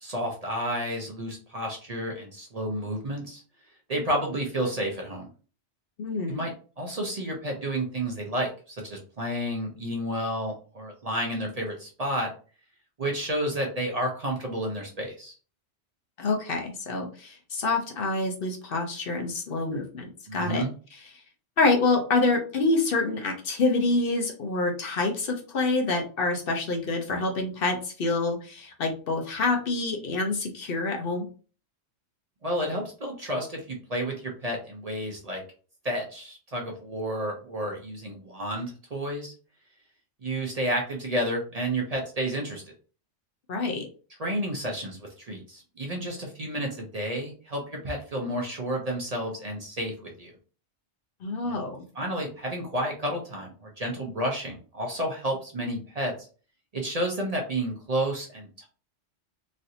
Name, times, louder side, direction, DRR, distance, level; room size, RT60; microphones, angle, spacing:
voice 1, 0.0-3.4 3.9-5.2 6.3-6.5 6.8-12.3 13.0-15.3 20.3-20.7 32.4-35.4 35.8-39.3 40.2-42.7 44.2-50.3 51.4-51.6 51.9-56.1 56.7-58.7, right 1 dB, 40° right, 0 dB, 0.7 m, -31 dB
voice 2, 6.0-6.4 16.2-20.6 20.9-21.0 21.6-31.3 43.5-43.9 51.2-51.8, left 3 dB, 60° left, 3 dB, 0.8 m, -27 dB
3.1 x 2.6 x 2.7 m, 0.38 s
omnidirectional pair, 1.1 m